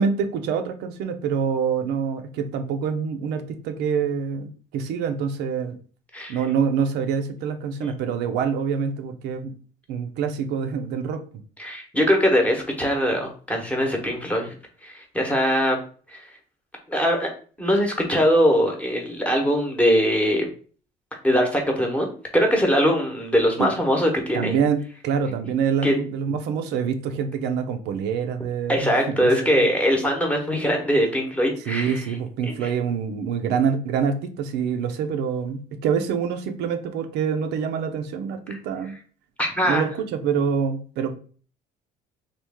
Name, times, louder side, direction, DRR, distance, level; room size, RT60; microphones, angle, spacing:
voice 1, 0.0-5.8 6.3-9.5 9.9-11.2 23.6-23.7 24.3-29.6 31.7-38.9 39.7-41.1, right 6 dB, 85° right, 6 dB, 0.5 m, -26 dB
voice 2, 11.6-14.5 14.8-15.8 16.1-16.3 16.9-17.3 17.6-20.5 21.2-24.5 25.8-25.9 28.7-32.0 38.5-38.6 39.4-39.9, equal, 10° left, 1 dB, 0.9 m, -21 dB
3.1 x 2.3 x 3.4 m, 0.41 s
cardioid pair, 110°, 17 cm